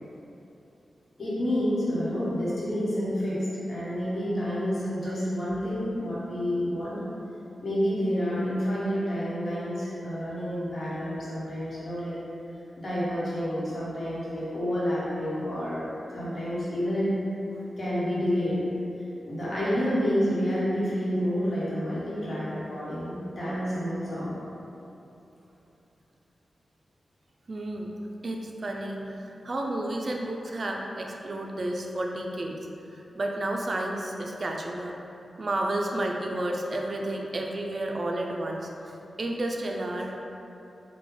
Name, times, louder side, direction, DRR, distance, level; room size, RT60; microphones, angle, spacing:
voice 1, 1.2-7.0 7.6-12.1 12.8-17.1 17.8-18.6 19.2-24.4, equal, 60° left, -10 dB, 1.0 m, -29 dB
voice 2, 27.5-27.9 28.2-32.6 32.9-35.0 35.4-40.2, right 1 dB, 50° right, 1 dB, 0.3 m, -31 dB
3.4 x 2.2 x 3.2 m, 2.8 s
cardioid pair, 75°, 0 cm